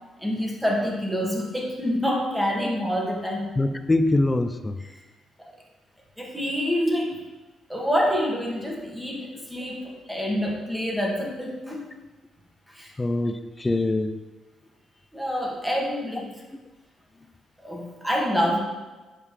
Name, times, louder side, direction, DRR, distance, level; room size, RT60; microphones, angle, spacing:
voice 1, 0.2-3.6 4.8-4.9 6.2-7.2 7.7-11.9 12.7-12.9 15.1-16.4 17.6-18.6, equal, 5° right, -1 dB, 1.5 m, -27 dB
voice 2, 3.6-4.7 13.0-14.2, left 2 dB, 20° left, 10 dB, 0.4 m, -23 dB
7.4 x 5.0 x 3.3 m, 1.2 s
cardioid pair, 90°, 0 cm